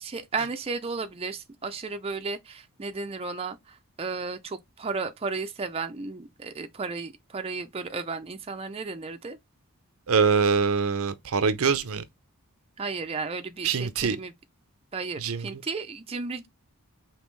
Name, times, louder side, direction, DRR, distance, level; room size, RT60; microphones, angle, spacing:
voice 1, 0.0-9.4 12.8-14.3 14.9-16.5, right 4 dB, 25° right, 0.5 m, -34 dB
voice 2, 10.1-12.0 13.6-14.2 15.2-15.5, right 5 dB, 70° right, 0.6 m, -24 dB
5.3 x 2.8 x 3.1 m
head